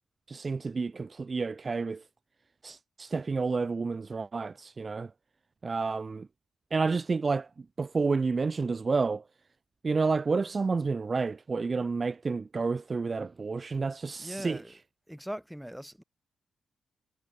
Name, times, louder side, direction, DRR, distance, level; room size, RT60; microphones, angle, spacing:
voice 1, 0.3-2.0 2.6-5.1 5.6-6.3 6.7-7.5 7.8-9.2 9.8-14.6, right 4 dB, 25° right, 0.6 m, -30 dB
voice 2, 14.2-14.8 15.1-16.0, equal, ahead, 7.1 m, -40 dB
wide cardioid pair, 160°, 0 cm